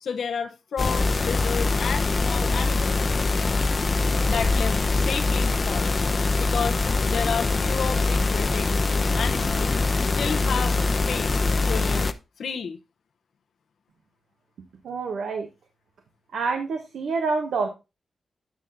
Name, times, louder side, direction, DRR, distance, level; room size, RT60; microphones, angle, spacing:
voice 1, 0.0-3.1 4.3-5.9 6.4-6.8 7.1-8.8 9.1-9.8 10.1-11.4 11.7-12.1 12.4-12.8, left 6 dB, 80° left, 0.8 m, -31 dB
sound 1, 0.8-12.1, left 3 dB, 40° left, 0.6 m, -23 dB
voice 2, 14.8-15.5 16.3-17.7, right 4 dB, 90° right, 1.2 m, -27 dB
9.2 x 5.9 x 3.8 m
cardioid pair, 95°, 0 cm